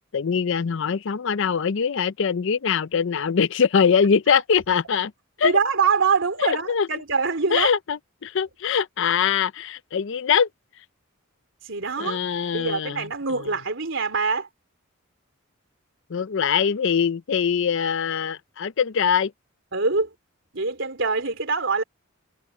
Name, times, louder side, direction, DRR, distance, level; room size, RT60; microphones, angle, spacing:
voice 1, 0.1-5.1 5.4-5.5 6.4-6.9 7.5-10.5 12.0-13.1 13.4-13.5 16.1-19.3, left 6 dB, 60° left, 0.5 m, -22 dB
voice 2, 5.4-7.7 11.6-12.2 12.5-14.5 19.7-20.1 20.5-21.8, right 4 dB, 65° right, 3.8 m, -24 dB
head